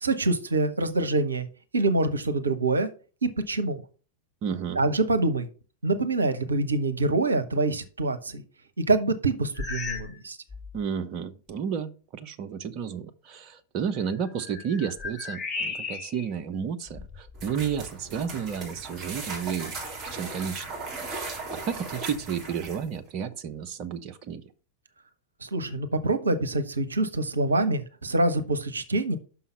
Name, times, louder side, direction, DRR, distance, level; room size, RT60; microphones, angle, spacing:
voice 1, 0.0-1.5 1.7-2.9 3.2-3.8 4.8-5.5 5.8-8.4 8.8-10.4 25.4-29.2, right 2 dB, 75° right, 10 dB, 0.7 m, -25 dB
voice 2, 4.4-4.8 10.7-19.7 20.0-20.7 21.1-24.4, right 7 dB, 40° right, 8 dB, 0.6 m, -32 dB
sound 1, 9.5-10.2 10.5-10.8 11.5-11.6 14.0-16.3 16.9-17.9, left 4 dB, 25° left, 1.4 m, -36 dB
sound 2, 17.3-22.9, right 3 dB, 20° right, 3.6 m, -37 dB
6.0 x 5.6 x 5.4 m, 0.38 s
figure-of-eight pair, 90°, 0 cm